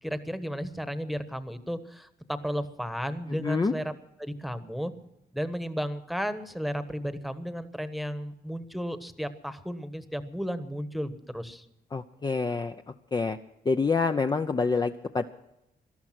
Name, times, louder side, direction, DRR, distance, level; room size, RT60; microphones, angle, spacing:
voice 1, 0.0-3.9 4.2-4.9 5.3-11.6, equal, ahead, 11 dB, 1.2 m, -34 dB
voice 2, 3.4-3.7 11.9-12.7 13.1-13.4 13.7-15.2, left 4 dB, 25° left, 6 dB, 0.6 m, -26 dB
18.5 x 13.0 x 5.9 m, 0.87 s
wide cardioid pair, 120°, 17 cm